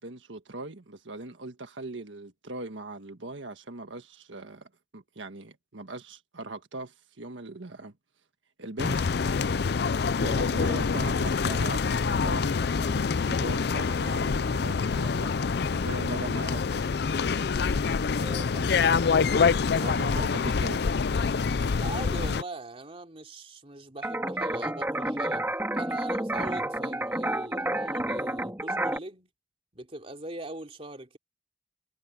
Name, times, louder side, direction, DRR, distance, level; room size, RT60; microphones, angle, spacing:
voice 1, 0.0-7.9 8.6-9.1 10.2-15.3 15.7-17.0 19.7-20.9, right 2 dB, 90° right, 1.6 m, -40 dB
sound 1, 8.8-22.4, left 5 dB, 60° left, 0.5 m, -26 dB
voice 2, 10.0-10.6 18.1-18.8 19.8-20.3 21.8-29.3 29.7-31.2, right 2 dB, 30° right, 3.2 m, -41 dB
sound 2, 24.0-29.0, right 1 dB, 10° right, 3.1 m, -30 dB
head